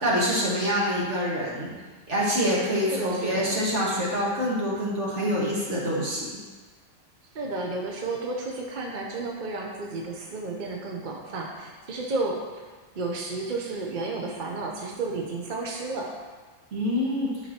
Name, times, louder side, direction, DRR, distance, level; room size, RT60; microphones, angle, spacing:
voice 1, 0.0-1.7 2.1-6.2 16.7-17.3, equal, 60° right, -5 dB, 1.8 m, -26 dB
voice 2, 2.9-3.5 7.3-12.7 13.0-16.1, right 3 dB, 45° right, 0 dB, 0.8 m, -32 dB
9.9 x 4.9 x 2.8 m, 1.3 s
omnidirectional pair, 1.4 m